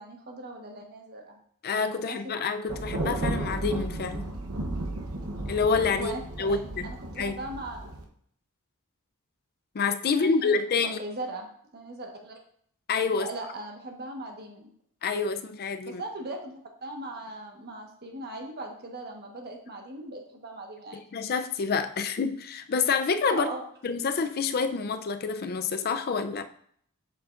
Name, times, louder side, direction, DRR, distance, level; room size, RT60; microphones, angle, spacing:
voice 1, 0.0-1.4 2.0-2.2 6.0-7.8 10.2-10.6 11.0-12.4 13.1-14.7 15.8-21.0 23.3-23.7, right 2 dB, 45° right, 2 dB, 1.3 m, -39 dB
voice 2, 1.6-4.3 5.5-6.1 6.4-6.9 7.2-7.3 9.7-11.0 12.9-13.3 15.0-16.0 21.1-23.5 23.8-26.4, left 5 dB, 45° left, 9 dB, 0.5 m, -27 dB
Thunder, 2.7-8.0, right 2 dB, 70° right, 0.9 m, -34 dB
7.3 x 7.0 x 2.5 m, 0.63 s
head